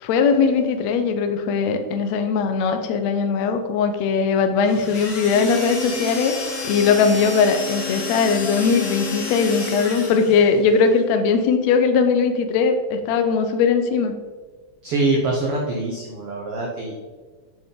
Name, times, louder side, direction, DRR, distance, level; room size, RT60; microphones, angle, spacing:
voice 1, 0.0-6.4 6.6-14.1, left 5 dB, 80° left, 7 dB, 1.6 m, -20 dB
sound 1, 4.6-10.5, left 3 dB, 50° left, 2.7 m, -30 dB
voice 2, 14.8-16.9, right 2 dB, 85° right, -1 dB, 1.2 m, -24 dB
8.5 x 5.4 x 3.8 m, 1.4 s
omnidirectional pair, 4.0 m